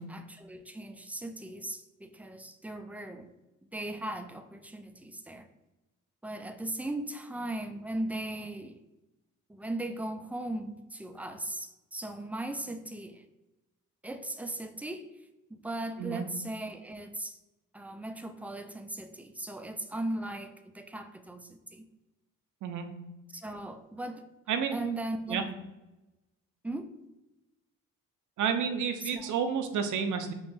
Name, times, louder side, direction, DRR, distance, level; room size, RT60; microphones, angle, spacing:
voice 1, 0.0-3.3 3.7-5.5 6.2-8.8 9.5-13.2 14.0-15.1 15.5-17.4 17.7-21.8 23.3-25.5 26.6-26.9 29.0-29.4, right 1 dB, 5° right, 7 dB, 0.4 m, -38 dB
voice 2, 24.5-24.8 25.3-25.4 28.4-30.3, right 7 dB, 65° right, 7 dB, 0.6 m, -30 dB
5.3 x 2.5 x 3.3 m, 1.0 s
cardioid pair, 70°, 32 cm